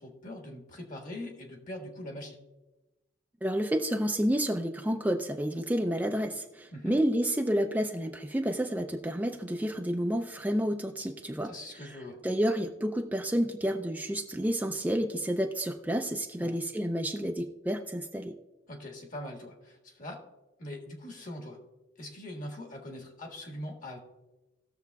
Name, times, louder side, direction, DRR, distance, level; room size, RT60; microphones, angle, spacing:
voice 1, 0.0-2.4 6.7-7.0 11.4-12.2 16.4-16.5 18.7-20.2 20.6-21.6 22.0-24.0, left 1 dB, 45° left, 2 dB, 1.5 m, -42 dB
voice 2, 3.4-12.0 12.2-18.4, equal, 10° right, 4 dB, 0.4 m, -30 dB
19.0 x 6.9 x 2.3 m, 1.1 s
head